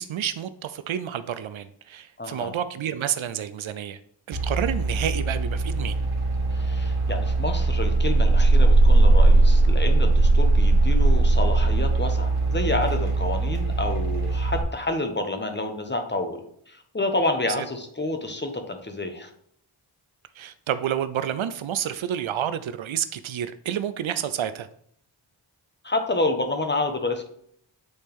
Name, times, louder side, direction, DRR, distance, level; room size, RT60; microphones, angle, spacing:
voice 1, 0.0-4.0 4.3-6.0 17.6-17.7 20.4-24.7, right 9 dB, 75° right, 13 dB, 0.5 m, -29 dB
voice 2, 2.2-2.5 6.5-16.4 16.7-19.3 25.8-27.3, left 2 dB, 20° left, 5 dB, 1.1 m, -29 dB
sound 1, 4.3-14.6, right 2 dB, 50° right, 1.8 m, -20 dB
8.0 x 4.2 x 3.5 m, 0.68 s
wide cardioid pair, 60°, 47 cm